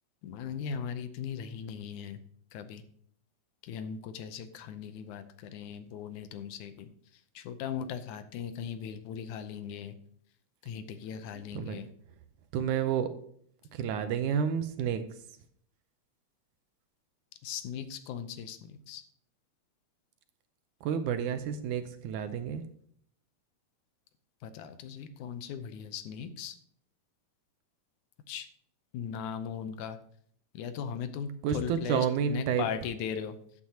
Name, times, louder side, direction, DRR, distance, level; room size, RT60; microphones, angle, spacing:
voice 1, 0.2-2.2 2.5-2.8 3.6-6.9 7.4-9.9 10.6-11.9 17.4-19.0 24.4-26.6 28.3-28.5 28.9-30.0 30.5-33.3, left 7 dB, 75° left, 10 dB, 2.1 m, -38 dB
voice 2, 11.3-11.8 12.5-13.1 13.7-15.0 20.8-22.6 31.4-32.7, right 8 dB, 80° right, 10 dB, 2.1 m, -30 dB
13.5 x 8.4 x 2.8 m, 0.63 s
omnidirectional pair, 3.7 m